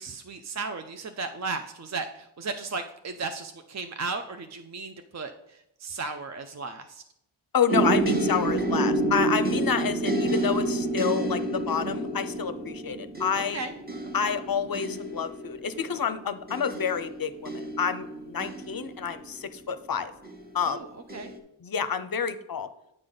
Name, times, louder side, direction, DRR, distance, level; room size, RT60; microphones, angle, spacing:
voice 1, 0.0-7.0 9.2-9.3 13.5-13.7 14.2-14.4 20.6-21.3, right 4 dB, 35° right, 7 dB, 0.5 m, -35 dB
voice 2, 7.5-13.6 14.1-20.1 20.5-20.8 21.6-22.7, left 7 dB, 45° left, 13 dB, 0.6 m, -29 dB
sound 1, 7.7-19.6 20.2-20.7 21.1-21.4, right 2 dB, 20° right, 1.0 m, -29 dB
8.9 x 5.1 x 3.9 m, 0.82 s
wide cardioid pair, 55°, 49 cm